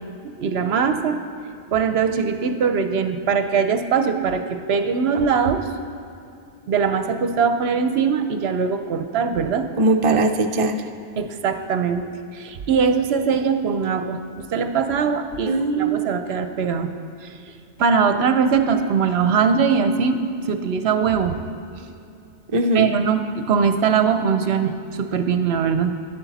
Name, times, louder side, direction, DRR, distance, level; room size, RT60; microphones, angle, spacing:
voice 1, 0.2-1.2 1.7-5.7 6.7-9.7 11.2-12.1 12.3-16.9 17.2-17.4 17.8-21.3 21.8-21.9 22.7-25.9, right 6 dB, 65° right, 9 dB, 0.8 m, -21 dB
voice 2, 9.8-10.8 15.5-16.1 22.5-22.9, right 2 dB, 45° right, 5 dB, 0.4 m, -20 dB
11.0 x 10.5 x 4.1 m, 2.6 s
omnidirectional pair, 1.2 m